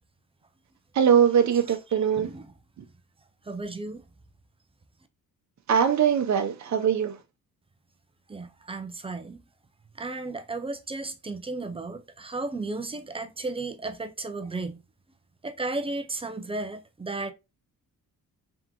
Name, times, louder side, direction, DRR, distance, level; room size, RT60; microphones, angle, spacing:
voice 1, 1.0-2.3 5.7-7.2, right 8 dB, 50° right, 0.8 m, -21 dB
voice 2, 2.1-2.5 3.5-4.0 8.3-9.4 10.0-14.8 15.4-17.3, right 3 dB, 15° right, 0.4 m, -34 dB
3.6 x 3.5 x 2.9 m
wide cardioid pair, 145°, 36 cm